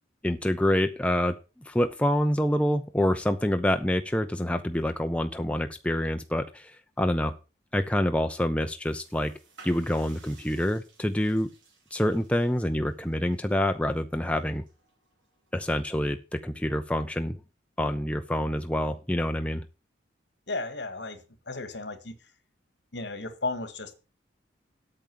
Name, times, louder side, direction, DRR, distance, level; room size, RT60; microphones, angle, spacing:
voice 1, 0.2-7.3 7.7-9.3 9.6-11.5 11.9-14.6 15.5-17.4 17.8-19.6, left 1 dB, 5° left, 7 dB, 0.6 m, -27 dB
sound 1, 8.8-15.5, right 4 dB, 80° right, 4.7 m, -57 dB
voice 2, 20.5-22.3 22.9-23.9, left 3 dB, 60° left, 11 dB, 1.9 m, -35 dB
8.9 x 7.0 x 7.6 m, 0.32 s
head